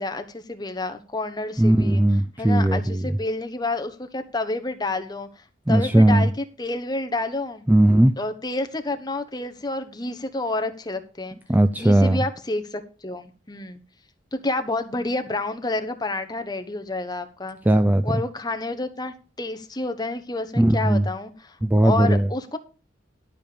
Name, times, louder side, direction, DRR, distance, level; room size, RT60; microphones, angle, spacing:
voice 1, 0.0-2.0 2.4-5.3 5.7-7.6 8.2-11.4 11.8-13.8 14.3-17.6 18.0-21.6 21.8-22.6, left 2 dB, 20° left, 1.1 m, -29 dB
voice 2, 1.6-3.2 5.7-6.3 7.7-8.1 11.5-12.2 17.7-18.2 20.6-21.0 21.6-22.3, right 1 dB, 10° right, 0.4 m, -18 dB
12.0 x 5.1 x 6.9 m
head